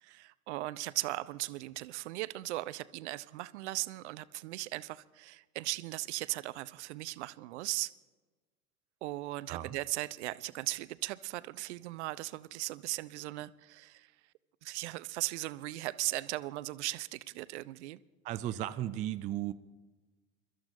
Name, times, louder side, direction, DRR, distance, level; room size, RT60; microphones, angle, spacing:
voice 1, 0.0-7.9 9.0-14.1 14.6-18.0, right 18 dB, 55° right, 0.7 m, -38 dB
voice 2, 18.2-19.5, right 13 dB, 20° right, 0.4 m, -35 dB
29.0 x 13.5 x 2.6 m
figure-of-eight pair, 85°, 43 cm